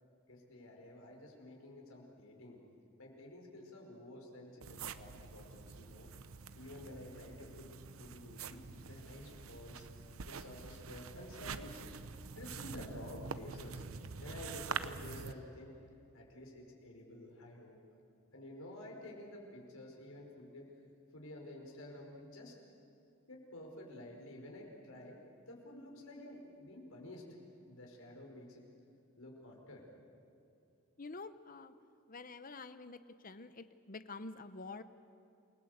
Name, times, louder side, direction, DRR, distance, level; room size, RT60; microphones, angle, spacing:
voice 1, 0.3-2.6 3.0-6.1 6.6-7.7 8.0-9.9 10.2-11.9 12.3-13.8 14.2-15.8 16.1-17.8 18.3-20.7 21.1-22.5 23.3-25.2 25.5-27.3 27.7-28.6 29.2-29.8, left 1 dB, 85° left, 0 dB, 5.2 m, -51 dB
sound 1, 4.6-15.3, right 5 dB, 90° right, 0.9 m, -46 dB
voice 2, 31.0-31.7 32.1-34.8, left 3 dB, 40° left, 12 dB, 0.9 m, -48 dB
28.5 x 20.0 x 8.1 m, 2.6 s
head